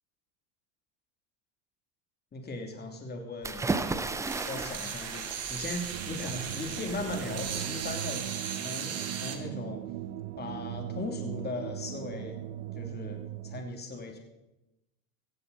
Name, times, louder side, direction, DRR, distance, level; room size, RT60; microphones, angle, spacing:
voice 1, 2.3-3.6 3.9-8.2 8.5-9.8 10.4-12.4 12.8-14.2, left 2 dB, 20° left, 3 dB, 2.9 m, -38 dB
sound 1, 3.4-8.3, right 3 dB, 5° right, 0.5 m, -36 dB
sound 2, 4.2-9.4, right 7 dB, 30° right, 2.0 m, -37 dB
sound 3, 5.9-13.6, right 12 dB, 50° right, 1.0 m, -39 dB
16.0 x 15.5 x 4.1 m, 0.97 s
supercardioid pair, 125°, 49 cm